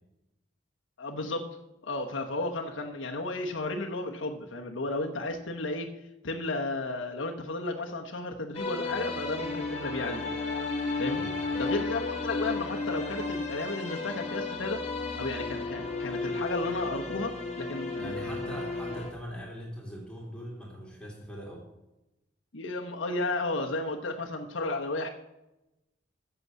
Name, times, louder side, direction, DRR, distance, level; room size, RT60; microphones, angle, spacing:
voice 1, 1.0-1.5 1.8-5.9 6.2-10.3 11.0-11.3 11.6-14.8 15.1-18.1 22.5-25.1, left 2 dB, 85° left, 1 dB, 1.0 m, -33 dB
sound 1, 8.5-19.1, left 3 dB, 35° left, 2.0 m, -33 dB
voice 2, 11.1-11.7 18.0-21.7, equal, 5° left, -4 dB, 2.4 m, -41 dB
8.2 x 7.0 x 7.5 m, 0.95 s
head